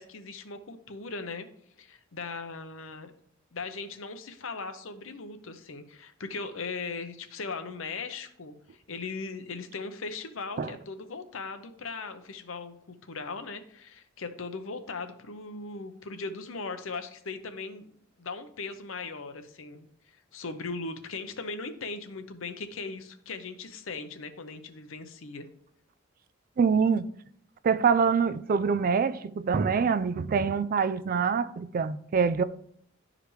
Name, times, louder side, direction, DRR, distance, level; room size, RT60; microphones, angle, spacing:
voice 1, 0.0-1.5 1.8-3.1 3.5-17.9 18.2-19.9 20.3-25.5, left 4 dB, 70° left, 0.8 m, -38 dB
voice 2, 26.6-27.1 27.6-32.4, right 5 dB, 45° right, 0.3 m, -25 dB
11.0 x 4.9 x 3.2 m
head